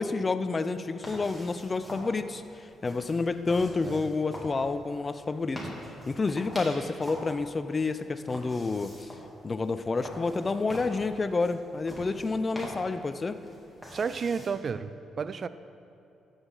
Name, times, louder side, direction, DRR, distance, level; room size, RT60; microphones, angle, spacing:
voice 1, 0.0-5.6 6.1-9.1 9.4-13.4, left 3 dB, 30° left, 11 dB, 0.4 m, -29 dB
sound 1, 1.0-14.5, equal, 5° right, 2.6 m, -44 dB
voice 2, 13.9-15.5, right 5 dB, 45° right, 14 dB, 0.4 m, -32 dB
12.5 x 7.9 x 3.9 m, 2.8 s
cardioid pair, 90°, 0 cm